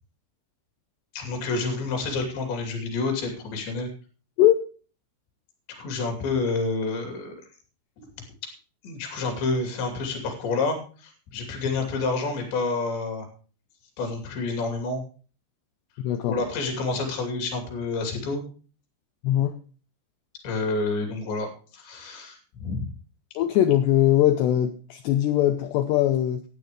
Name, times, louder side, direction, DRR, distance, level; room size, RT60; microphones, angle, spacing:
voice 1, 1.1-3.9 5.7-7.4 8.0-8.1 8.8-13.3 14.0-15.0 16.3-18.4 20.4-22.8, left 3 dB, 65° left, 3 dB, 4.9 m, -29 dB
voice 2, 16.0-16.4 19.2-19.6 23.4-26.4, left 12 dB, 80° left, 7 dB, 2.5 m, -21 dB
12.5 x 9.1 x 5.0 m, 0.38 s
omnidirectional pair, 5.6 m